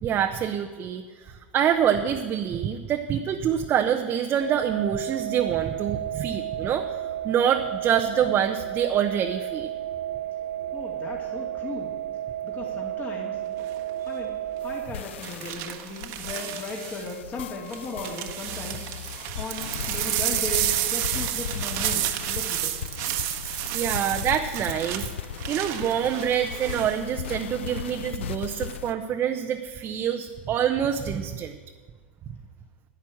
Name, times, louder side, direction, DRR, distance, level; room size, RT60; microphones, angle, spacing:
voice 1, 0.0-9.7 14.0-14.1 23.7-25.1 25.5-31.6, right 9 dB, 35° right, 4 dB, 0.8 m, -26 dB
sound 1, 4.4-14.8, right 12 dB, 75° right, 1.7 m, -32 dB
voice 2, 10.7-12.0 12.4-13.4 14.0-14.3 14.6-18.9 19.4-22.7, left 2 dB, 30° left, -1 dB, 2.1 m, -36 dB
sound 2, 13.6-13.9 15.2-17.1 17.7-27.0 27.3-27.8, right 13 dB, 55° right, 1.2 m, -31 dB
sound 3, 14.6-28.9, left 9 dB, 85° left, 0.5 m, -37 dB
10.5 x 9.3 x 7.2 m, 1.5 s
hypercardioid pair, 115°, 6 cm